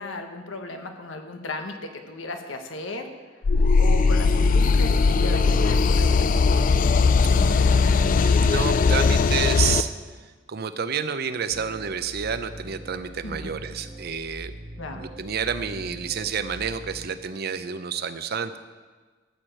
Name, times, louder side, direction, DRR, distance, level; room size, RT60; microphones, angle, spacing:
voice 1, 0.0-3.1 3.7-6.3 13.2-13.6 14.8-15.0, left 2 dB, 90° left, 5 dB, 1.3 m, -35 dB
sound 1, 3.4-9.8, left 4 dB, 45° left, 0.4 m, -19 dB
voice 2, 7.3-9.9 10.2-14.5 14.9-18.6, right 6 dB, 55° right, 11 dB, 0.6 m, -30 dB
sound 2, 11.5-17.1, right 1 dB, 35° right, 1.6 m, -41 dB
13.0 x 4.9 x 7.5 m, 1.4 s
head